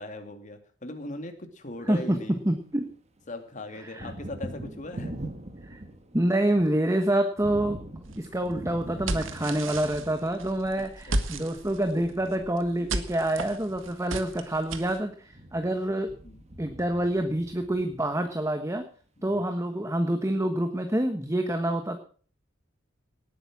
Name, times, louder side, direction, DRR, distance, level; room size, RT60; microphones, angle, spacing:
voice 1, 0.0-2.4 3.3-5.1 10.8-11.4 12.8-12.9 16.2-16.4 19.2-19.4, left 1 dB, 40° left, 6 dB, 2.5 m, -40 dB
Thunder, 1.7-2.9 3.2-18.5, right 1 dB, 35° right, 1.8 m, -43 dB
voice 2, 1.9-2.2 2.4-2.9 3.8-4.1 5.7-5.8 6.1-7.8 8.2-16.1 16.6-18.8 19.2-22.0, right 1 dB, 15° right, 6 dB, 1.3 m, -27 dB
sound 1, 8.0-15.0, right 2 dB, 80° right, 1.7 m, -35 dB
18.5 x 9.1 x 6.1 m, 0.43 s
head